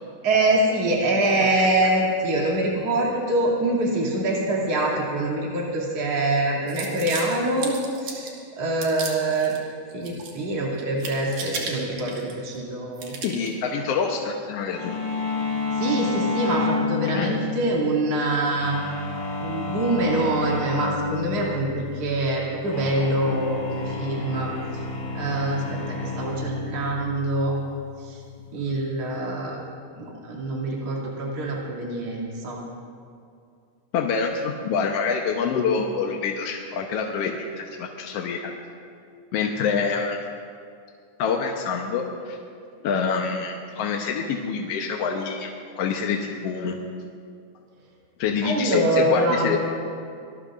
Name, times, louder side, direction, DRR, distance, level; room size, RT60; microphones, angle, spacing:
voice 1, 0.2-7.7 8.0-8.3 8.6-9.5 9.9-13.1 15.8-18.8 19.4-24.5 25.1-27.5 28.1-28.2 28.5-29.6 30.0-32.6 48.4-49.6, right 2 dB, 50° right, -5 dB, 3.7 m, -24 dB
sound 1, 6.7-8.4 8.8-9.6 9.9-10.5 10.8-12.6 13.0-13.6, right 4 dB, 75° right, 3.4 m, -35 dB
voice 2, 13.2-15.0 17.1-17.3 33.9-38.5 39.3-40.2 41.2-42.4 42.8-45.5 45.8-46.8 48.2-49.6, left 5 dB, 65° left, 1 dB, 1.7 m, -26 dB
sound 2, 14.7-29.2, left 4 dB, 90° left, 4.1 m, -30 dB
25.5 x 20.0 x 2.5 m, 2.4 s
omnidirectional pair, 3.6 m